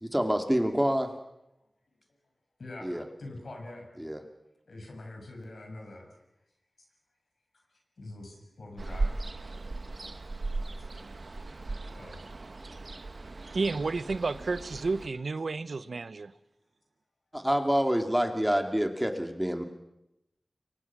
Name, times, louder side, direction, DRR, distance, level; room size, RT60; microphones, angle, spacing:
voice 1, 0.0-1.1 2.8-3.0 4.0-4.2 17.3-19.6, equal, 5° right, 5 dB, 2.8 m, -27 dB
voice 2, 2.6-2.9 3.2-3.8 4.7-6.1 8.0-9.1 10.6-10.7 11.9-12.2, left 2 dB, 85° left, 2 dB, 6.8 m, -44 dB
Ocean, 8.8-15.1, right 2 dB, 60° right, 1.3 m, -37 dB
voice 3, 13.5-16.3, right 3 dB, 75° right, 14 dB, 0.9 m, -31 dB
29.5 x 23.5 x 6.1 m, 0.88 s
wide cardioid pair, 60°, 0 cm